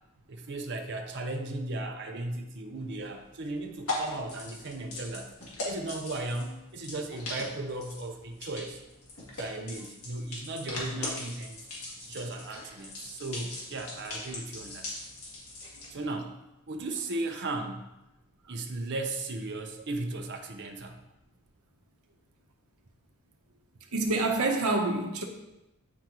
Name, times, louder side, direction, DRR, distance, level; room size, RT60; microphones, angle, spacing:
voice 1, 0.3-5.3 5.6-8.8 9.4-11.7 12.0-14.9 15.9-16.4 16.7-17.9 18.5-21.0, right 2 dB, 55° right, 0.7 m, -36 dB
sound 1, 2.8-16.0, left 2 dB, 70° left, 1.8 m, -40 dB
voice 2, 23.9-25.2, right 2 dB, 85° right, 0.9 m, -27 dB
9.3 x 3.8 x 3.0 m
head